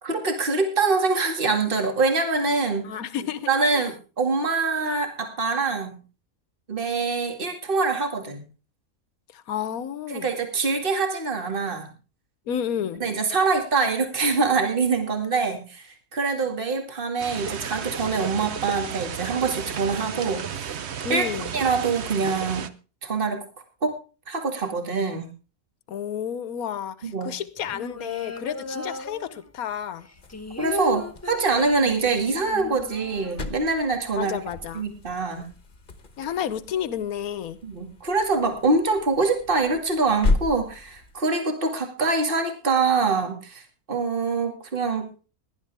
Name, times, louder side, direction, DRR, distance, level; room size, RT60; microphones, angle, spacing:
voice 1, 0.0-2.9 3.5-6.0 6.7-8.4 10.1-11.9 13.0-20.8 21.1-21.2 21.5-22.7 23.0-23.4 23.8-24.0 24.3-25.3 27.0-27.4 30.6-34.4 34.7-35.5 37.6-43.6 43.9-45.1, right 4 dB, 35° right, 5 dB, 2.4 m, -24 dB
voice 2, 2.8-3.9 9.3-10.3 12.5-13.2 21.0-21.5 25.9-30.1 34.2-34.9 36.2-37.6, left 9 dB, 80° left, 15 dB, 1.4 m, -31 dB
sound 1, 17.2-22.7, right 7 dB, 55° right, 1.0 m, -33 dB
sound 2, 27.5-29.7 30.0-34.0 34.2-34.3 34.6-35.1, left 1 dB, 20° left, 0.4 m, -36 dB
sound 3, 30.1-41.3, left 3 dB, 35° left, 1.3 m, -34 dB
18.5 x 11.5 x 3.5 m, 0.33 s
omnidirectional pair, 1.5 m